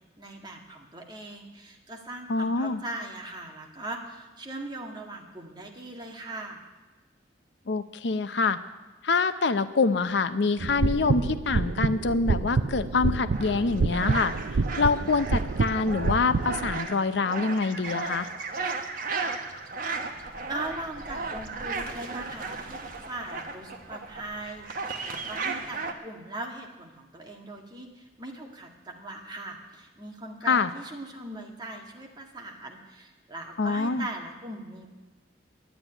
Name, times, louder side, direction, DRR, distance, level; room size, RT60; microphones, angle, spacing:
voice 1, 0.2-6.7 20.5-34.9, right 2 dB, 25° right, 1 dB, 1.8 m, -40 dB
voice 2, 2.3-2.8 7.7-8.6 9.0-14.3 14.8-18.3 30.5-30.7 33.6-34.1, left 4 dB, 70° left, 12 dB, 0.6 m, -25 dB
sound 1, 10.6-16.8, right 4 dB, 70° right, 0.5 m, -28 dB
sound 2, 13.3-25.9, right 4 dB, 50° right, 1.2 m, -35 dB
11.0 x 9.6 x 10.0 m, 1.2 s
head